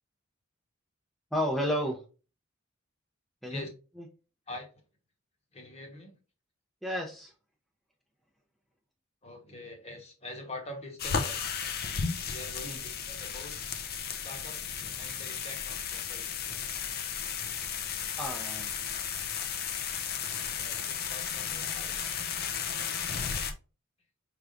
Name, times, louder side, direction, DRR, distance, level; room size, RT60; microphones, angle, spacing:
voice 1, 1.3-2.0 3.4-3.6 6.8-7.3 12.6-12.8 18.2-18.7, equal, ahead, 0.6 m, -31 dB
voice 2, 5.5-6.2 9.2-11.4 12.3-13.5 14.1-16.3 20.5-22.0, left 2 dB, 30° left, 1.2 m, -44 dB
sound 1, 11.0-23.5, left 7 dB, 50° left, 0.6 m, -34 dB
4.7 x 3.4 x 2.5 m
head